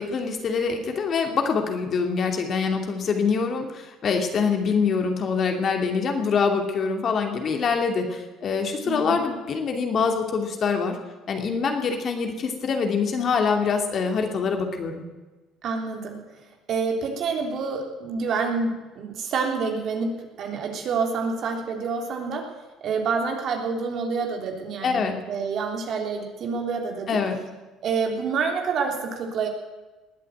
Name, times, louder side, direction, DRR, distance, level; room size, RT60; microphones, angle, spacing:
voice 1, 0.0-11.0 11.3-15.0 24.8-25.2 27.1-27.4, left 5 dB, 50° left, 4 dB, 2.7 m, -25 dB
voice 2, 8.8-9.2 15.6-16.2 16.7-22.5 22.8-27.2 27.8-29.5, right 5 dB, 60° right, 2 dB, 3.3 m, -28 dB
20.0 x 8.4 x 8.0 m, 1.2 s
supercardioid pair, 75°, 0 cm